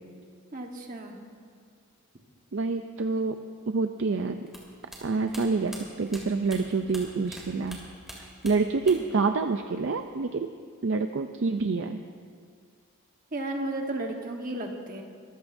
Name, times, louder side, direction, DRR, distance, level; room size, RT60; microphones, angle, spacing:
voice 1, 0.5-1.2 13.3-15.0, right 1 dB, 40° right, 2 dB, 1.3 m, -33 dB
voice 2, 2.5-3.4 3.7-4.5 5.0-7.8 8.2-10.5 10.8-12.0, right 4 dB, 55° right, 7 dB, 0.5 m, -27 dB
sound 1, 4.5-7.4 7.7-9.2 9.4-10.2, right 1 dB, ahead, 2.5 m, -44 dB
24.0 x 15.5 x 2.7 m, 2.1 s
head